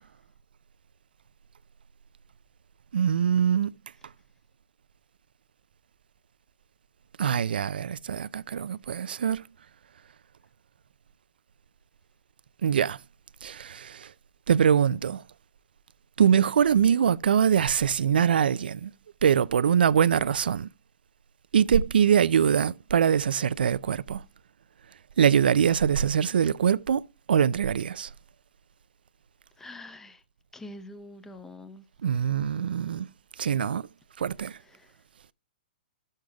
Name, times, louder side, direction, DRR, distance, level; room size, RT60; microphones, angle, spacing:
voice 1, 2.9-3.7 7.2-9.4 12.6-13.0 13.4-14.1 14.5-15.2 16.2-18.9 19.2-20.7 21.5-24.2 25.2-27.0 27.3-28.1 32.0-33.1 33.4-33.9 34.2-34.5, right 8 dB, 80° right, 0.4 m, -23 dB
voice 2, 29.6-30.2 30.5-31.8 34.6-34.9, left 1 dB, 10° left, 0.7 m, -45 dB
14.0 x 6.5 x 2.3 m
hypercardioid pair, 130°, 5 cm